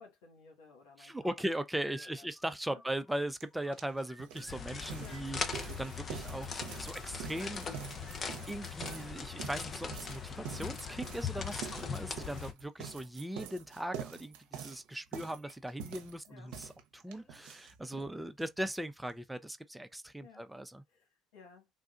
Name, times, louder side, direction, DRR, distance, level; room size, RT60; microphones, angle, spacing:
voice 1, 0.0-1.4 1.8-2.8 5.0-5.3 8.9-9.3 11.7-12.0 16.3-16.5 20.2-20.5 20.9-21.7, left 5 dB, 85° left, 1.5 m, -57 dB
voice 2, 1.0-7.7 8.5-20.8, right 1 dB, 5° right, 0.5 m, -39 dB
sound 1, 1.3-3.2 3.5-4.8 5.0-6.1 6.8-12.4 13.2-13.5 14.7-15.5 15.8-15.9 16.3-16.4 17.0-17.4, equal, 25° left, 1.6 m, -58 dB
sound 2, 3.4-3.5 3.7-18.1 18.4-18.5 18.7-18.8 19.1-19.2, right 8 dB, 80° right, 0.6 m, -46 dB
sound 3, 4.5-12.5, left 6 dB, 40° left, 0.7 m, -40 dB
3.6 x 2.3 x 2.4 m
supercardioid pair, 70°, 0 cm